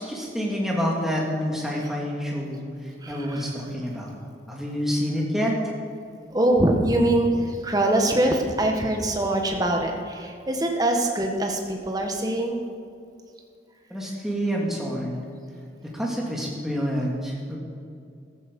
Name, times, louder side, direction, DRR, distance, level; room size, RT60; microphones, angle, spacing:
voice 1, 0.0-2.7 3.1-4.1 4.5-5.6 13.9-15.2 15.9-17.6, equal, ahead, -3 dB, 2.6 m, -27 dB
voice 2, 3.0-3.4 6.3-12.6, right 1 dB, 20° right, 2 dB, 1.6 m, -23 dB
14.5 x 13.5 x 5.5 m, 2.4 s
head